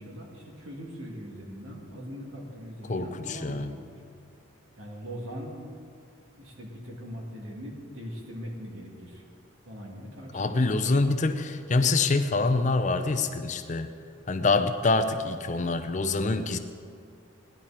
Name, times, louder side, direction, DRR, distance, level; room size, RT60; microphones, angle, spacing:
voice 1, 0.0-3.9 4.8-5.7 6.4-9.2 9.6-11.1, equal, 70° right, -3 dB, 2.8 m, -41 dB
voice 2, 2.9-3.7 10.3-13.9 14.3-16.6, left 3 dB, 35° left, 8 dB, 0.5 m, -25 dB
18.0 x 11.0 x 4.4 m, 2.4 s
head